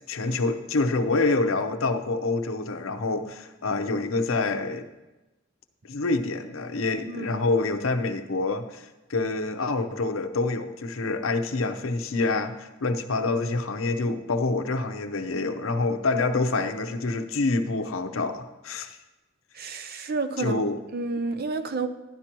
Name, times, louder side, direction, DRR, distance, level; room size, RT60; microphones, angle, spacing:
voice 1, 0.1-4.9 5.8-19.0 20.4-20.8, left 3 dB, 90° left, 8 dB, 0.7 m, -27 dB
voice 2, 7.1-7.5 19.5-20.6 20.9-21.9, right 3 dB, 50° right, 9 dB, 0.7 m, -30 dB
12.0 x 11.5 x 3.0 m, 1.0 s
head